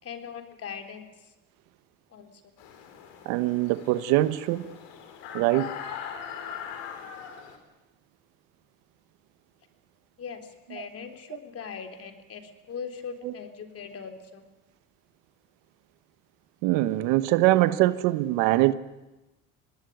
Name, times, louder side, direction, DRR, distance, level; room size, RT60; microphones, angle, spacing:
voice 1, 0.0-1.1 2.1-2.3 10.2-14.4, left 6 dB, 45° left, 3.5 m, -40 dB
sound 1, 2.6-7.6, left 8 dB, 80° left, 4.5 m, -40 dB
voice 2, 3.3-4.6 5.3-5.7 13.2-13.3 16.6-18.7, right 16 dB, 75° right, 1.2 m, -23 dB
25.5 x 19.0 x 9.4 m
supercardioid pair, 85°, 32 cm